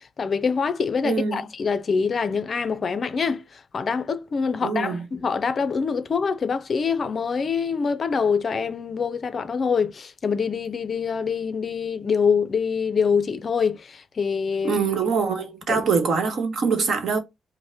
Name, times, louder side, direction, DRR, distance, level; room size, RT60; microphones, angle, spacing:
voice 1, 0.2-14.8 15.7-15.8, left 5 dB, 40° left, 0.4 m, -25 dB
voice 2, 1.0-1.5 4.6-5.0 14.6-17.2, right 5 dB, 55° right, 1.1 m, -24 dB
5.2 x 2.1 x 3.4 m
cardioid pair, 125°, 0 cm